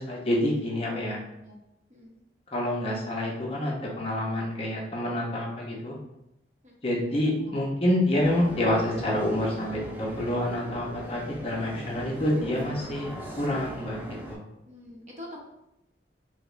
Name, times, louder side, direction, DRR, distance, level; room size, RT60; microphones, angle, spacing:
voice 1, 0.0-1.2 2.5-6.0 6.8-13.1 13.4-14.0 14.3-14.4, left 1 dB, 35° left, -3 dB, 0.7 m, -27 dB
sound 1, 8.2-14.3, right 1 dB, 10° right, 0.4 m, -39 dB
voice 2, 14.6-15.4, left 1 dB, 40° right, -2 dB, 0.8 m, -45 dB
4.9 x 2.1 x 2.5 m, 0.86 s
head